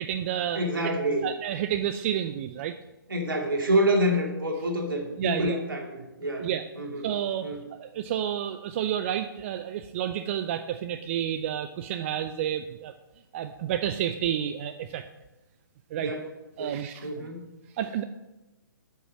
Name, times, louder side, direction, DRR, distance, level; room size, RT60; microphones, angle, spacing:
voice 1, 0.0-0.9 1.2-2.7 5.2-5.6 6.4-6.6 7.0-12.9 13.3-15.0 15.9-16.1 16.6-17.1 17.8-18.0, right 10 dB, 35° right, 9 dB, 0.4 m, -30 dB
voice 2, 0.5-1.3 3.1-6.5 6.7-7.1 7.4-7.6 16.0-16.3 16.6-17.4, equal, 75° right, 1 dB, 2.3 m, -27 dB
8.2 x 5.9 x 6.3 m, 1.0 s
figure-of-eight pair, 130°, 11 cm